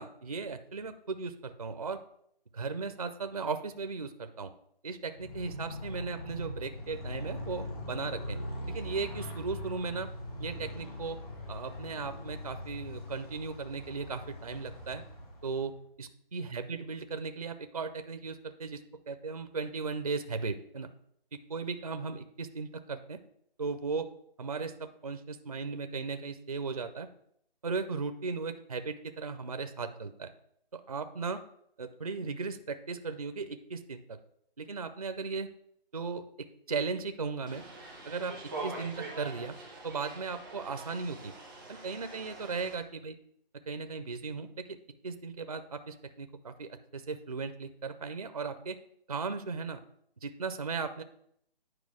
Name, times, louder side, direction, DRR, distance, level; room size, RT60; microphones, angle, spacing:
voice 1, 0.0-2.0 2.5-4.5 4.8-8.4 8.7-10.1 10.4-11.2 11.5-15.0 15.4-20.9 21.3-23.2 23.6-24.1 24.4-27.1 27.6-30.3 30.7-31.4 31.8-34.2 34.6-35.5 35.9-37.6 38.1-39.6 39.8-41.3 41.7-43.2 43.7-44.8 45.0-48.8 49.1-49.8 50.2-51.0, right 4 dB, 40° right, 10 dB, 0.4 m, -37 dB
Motorcycle, 5.1-15.8, left 1 dB, 40° left, 2.7 m, -41 dB
sound 1, 37.5-42.7, right 3 dB, ahead, 0.7 m, -44 dB
9.5 x 4.8 x 4.8 m, 0.70 s
hypercardioid pair, 170°, 30 cm